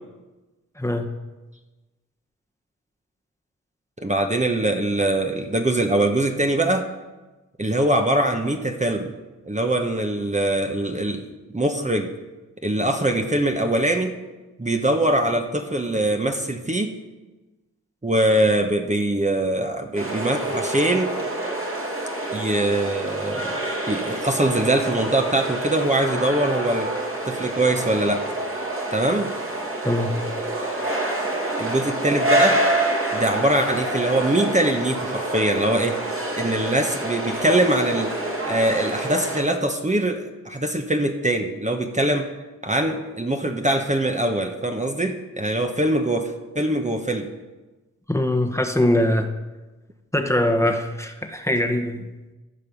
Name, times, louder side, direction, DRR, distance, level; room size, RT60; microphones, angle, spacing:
voice 1, 0.8-1.1 29.8-30.1 48.1-49.3 50.1-52.0, left 1 dB, 10° left, 4 dB, 1.2 m, -22 dB
voice 2, 4.0-6.9 7.6-9.1 9.4-11.3 11.5-12.1 12.6-14.2 14.6-16.9 18.0-21.2 22.3-23.5 23.9-26.9 27.2-28.3 28.9-29.3 31.6-32.6 33.1-36.1 36.3-42.3 42.6-47.3, right 1 dB, 20° right, 4 dB, 1.1 m, -22 dB
sound 1, 20.0-39.4, right 1 dB, 40° right, 2.4 m, -27 dB
14.5 x 5.4 x 5.3 m, 1.1 s
cardioid pair, 40°, 33 cm